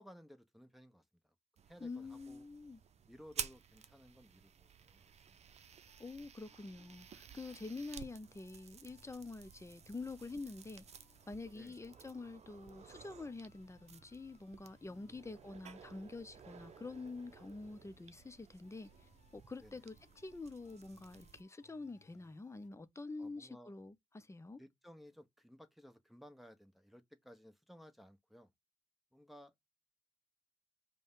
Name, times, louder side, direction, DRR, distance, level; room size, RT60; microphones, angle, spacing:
voice 1, 0.0-1.3 1.7-2.4 3.1-5.4 11.5-11.8 14.8-15.3 19.6-19.8 23.2-23.7 24.6-28.5 29.1-29.5, equal, ahead, 1.1 m, -58 dB
sound 1, 1.6-21.4, right 7 dB, 55° right, 0.6 m, -53 dB
voice 2, 1.8-2.8 6.0-24.6, left 3 dB, 20° left, 0.8 m, -47 dB
sound 2, 5.9-22.7, left 7 dB, 70° left, 0.9 m, -71 dB
5.0 x 2.4 x 3.8 m
hypercardioid pair, 40°, 13 cm